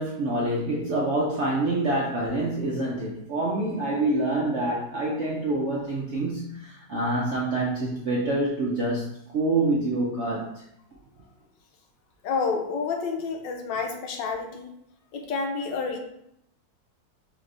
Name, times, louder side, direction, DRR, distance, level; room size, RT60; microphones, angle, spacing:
voice 1, 0.0-10.6, right 2 dB, 70° right, -4 dB, 0.6 m, -26 dB
voice 2, 12.2-14.7 15.1-16.0, left 4 dB, 90° left, 3 dB, 1.4 m, -29 dB
3.4 x 3.3 x 3.8 m, 0.76 s
omnidirectional pair, 1.9 m